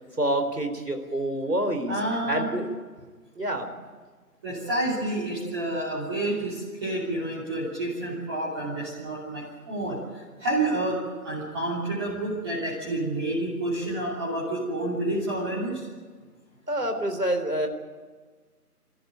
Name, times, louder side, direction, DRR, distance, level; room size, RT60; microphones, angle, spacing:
voice 1, 0.2-1.9 2.3-2.7 3.4-3.7 16.7-17.7, right 1 dB, 90° right, 6 dB, 4.0 m, -27 dB
voice 2, 1.9-2.4 4.4-11.0 11.2-15.9, right 1 dB, 15° right, -8 dB, 3.2 m, -29 dB
25.5 x 14.5 x 9.1 m, 1.4 s
figure-of-eight pair, 160°, 46 cm